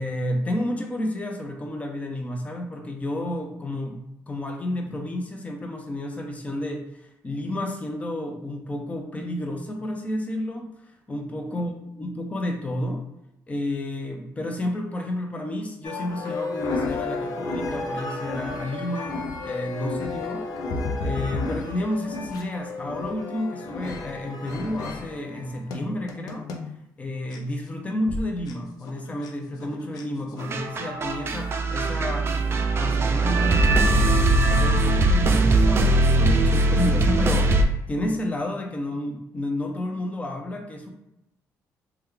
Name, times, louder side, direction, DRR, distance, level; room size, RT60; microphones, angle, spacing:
voice 1, 0.0-4.0 4.3-13.0 13.5-20.5 21.0-26.5 27.0-32.3 32.8-40.9, left 1 dB, 20° left, 3 dB, 0.6 m, -31 dB
sound 1, 15.8-26.7 27.3-27.4 28.1-28.2 28.5-28.6 28.8-29.3 29.6-30.0 30.4-30.6, left 3 dB, 70° left, 0.5 m, -32 dB
sound 2, 30.4-37.6, right 2 dB, 35° right, 0.4 m, -20 dB
3.1 x 2.2 x 3.6 m, 0.84 s
cardioid pair, 95°, 7 cm